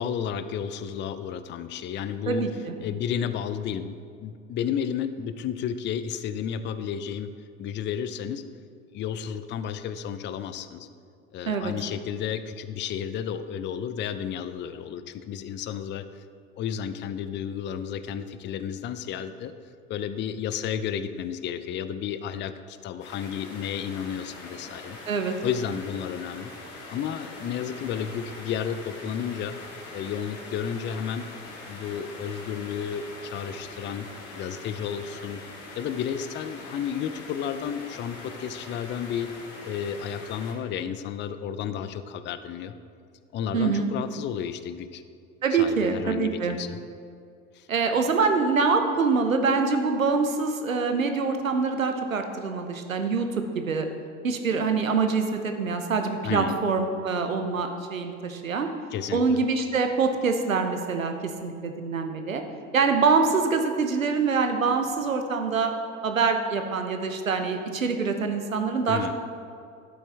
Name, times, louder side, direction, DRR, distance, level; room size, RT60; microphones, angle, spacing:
voice 1, 0.0-2.5 2.8-7.3 7.6-8.4 8.9-10.9 11.3-16.2 16.5-19.5 19.9-25.0 25.4-26.5 26.9-29.6 29.9-31.3 31.7-34.1 34.4-35.4 35.7-39.3 39.6-42.7 43.3-45.0 45.5-46.8 47.5-47.7 56.2-56.6 58.9-59.4 68.9-69.1, left 8 dB, 30° left, 12 dB, 0.5 m, -32 dB
voice 2, 2.3-2.7 11.5-11.7 25.1-25.3 43.5-43.9 45.4-46.6 47.7-53.3 53.5-53.9 54.2-58.7 59.1-62.4 62.7-65.7 66.0-69.0, right 4 dB, 90° right, 6 dB, 0.9 m, -25 dB
sound 1, 23.0-40.5, left 2 dB, 60° left, 2.3 m, -43 dB
11.5 x 7.9 x 3.4 m, 2.3 s
figure-of-eight pair, 70°, 39 cm